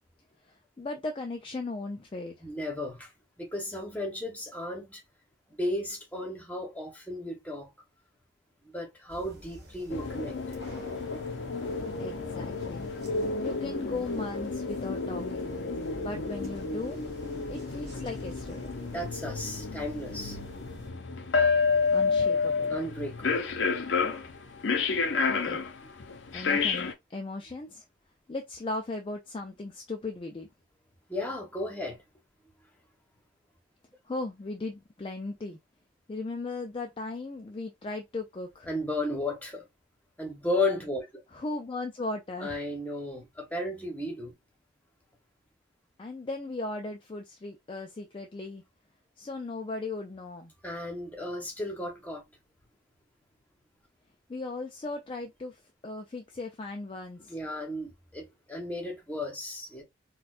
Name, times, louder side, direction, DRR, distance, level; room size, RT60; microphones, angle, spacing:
voice 1, 0.4-2.5 12.0-12.9 13.4-15.5 15.9-17.0 17.5-18.8 21.9-22.8 25.3-25.6 26.3-27.8 28.3-30.5 34.1-35.6 36.1-38.7 41.3-42.6 46.0-48.6 49.2-50.5 54.3-57.4, left 2 dB, 25° left, 0.3 m, -37 dB
voice 2, 2.4-3.1 3.4-5.0 5.5-7.7 8.6-10.6 18.9-20.4 22.7-23.5 31.1-32.0 38.7-39.6 40.2-41.1 42.4-44.3 50.6-52.2 57.3-59.8, left 1 dB, 10° left, 0.9 m, -34 dB
sound 1, 9.1-20.9, equal, 55° right, 2.0 m, -48 dB
sound 2, 9.9-26.9, left 4 dB, 70° left, 0.6 m, -30 dB
4.2 x 2.3 x 2.4 m
head